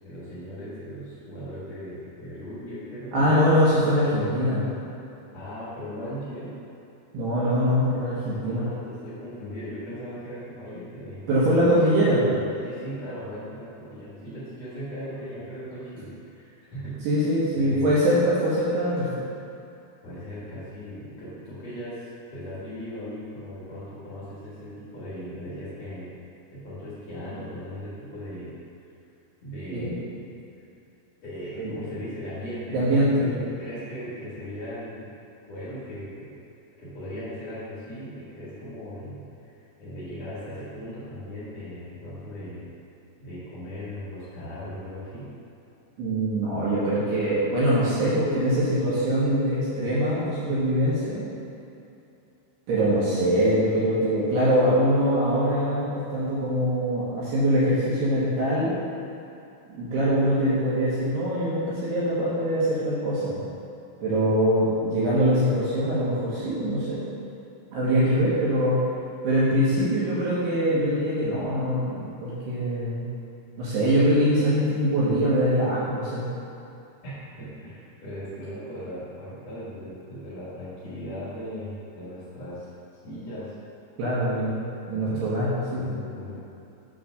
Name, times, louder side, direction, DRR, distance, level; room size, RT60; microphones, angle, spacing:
voice 1, 0.0-3.3 4.0-4.3 5.3-6.5 8.4-11.3 11.5-17.0 17.5-18.1 20.0-26.1 26.5-28.5 29.4-30.0 30.5-30.6 31.2-32.8 33.1-35.1 35.5-36.3 36.8-39.5 39.8-42.7 43.2-45.3 77.0-77.1 77.4-82.7 83.0-83.5 84.3-84.5 85.0-85.2 85.7-86.3, equal, 90° left, -11 dB, 1.4 m, -38 dB
voice 2, 3.1-4.6 7.1-8.7 11.3-12.2 17.1-19.1 29.7-29.9 31.6-31.7 32.7-33.4 46.0-51.2 52.7-58.7 59.7-63.4 64.0-67.0 67.7-68.8 69.2-73.1 73.6-76.2 84.0-84.5 84.9-86.0, equal, 70° right, -9 dB, 2.7 m, -23 dB
8.6 x 3.2 x 6.3 m, 2.8 s
omnidirectional pair, 5.9 m